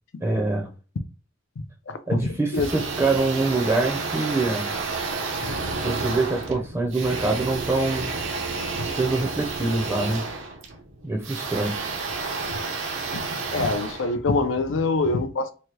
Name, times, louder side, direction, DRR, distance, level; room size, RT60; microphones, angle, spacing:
voice 1, 0.2-0.7 2.1-4.7 5.8-8.1 8.9-10.2 11.0-11.9, right 3 dB, 15° right, 0.5 m, -25 dB
voice 2, 1.9-2.7 5.5-5.6 8.7-8.9 13.1-15.5, left 3 dB, 85° left, 0.5 m, -25 dB
sound 1, 2.5-14.7, right 4 dB, 80° right, 0.7 m, -31 dB
2.9 x 2.2 x 3.1 m
head